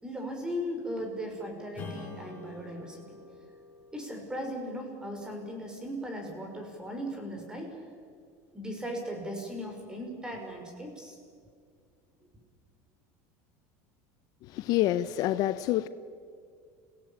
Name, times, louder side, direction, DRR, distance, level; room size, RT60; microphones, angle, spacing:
voice 1, 0.0-3.0 3.9-7.7 8.5-11.2, equal, 10° right, 5.8 m, -37 dB
Strum, 1.7-6.7, left 3 dB, 20° left, 6.8 m, -48 dB
voice 2, 14.4-15.9, left 14 dB, 55° left, 0.7 m, -27 dB
29.5 x 17.0 x 8.8 m
supercardioid pair, 130°, 8 cm